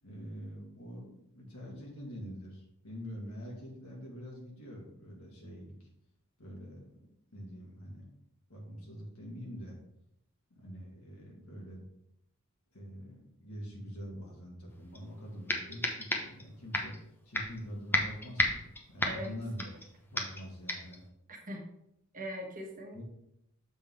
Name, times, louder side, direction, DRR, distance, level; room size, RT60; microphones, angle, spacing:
voice 1, 0.0-5.9 6.4-8.1 8.5-9.8 10.5-11.8 12.7-19.7 20.1-21.0 22.9-23.0, equal, 85° left, -2 dB, 2.3 m, -45 dB
sound 1, 14.9-15.0 15.5-16.4 16.7-17.0 17.3-17.6 17.9-19.9 20.2-20.4 20.7-21.0, left 1 dB, 10° left, 0.8 m, -32 dB
voice 2, 19.0-19.4 21.3-21.7 22.1-23.0, equal, 40° right, 2 dB, 1.2 m, -41 dB
6.9 x 3.8 x 4.7 m, 0.79 s
head